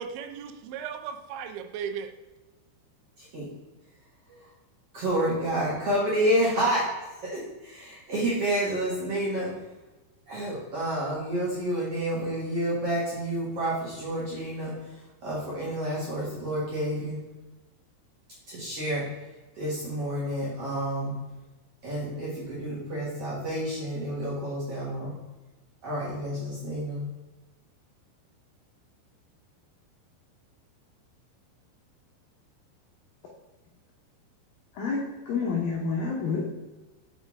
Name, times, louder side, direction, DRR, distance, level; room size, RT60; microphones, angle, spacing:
voice 1, 0.0-2.1, right 7 dB, 80° right, 7 dB, 2.9 m, -36 dB
voice 2, 4.9-6.9 7.2-9.5 10.3-14.7 15.2-17.2 18.5-19.0 19.6-21.1 21.8-25.1 25.8-27.1, right 1 dB, 60° right, -7 dB, 1.6 m, -29 dB
voice 3, 34.8-36.4, left 4 dB, 70° left, -3 dB, 2.2 m, -28 dB
6.5 x 6.2 x 3.6 m, 1.1 s
omnidirectional pair, 5.2 m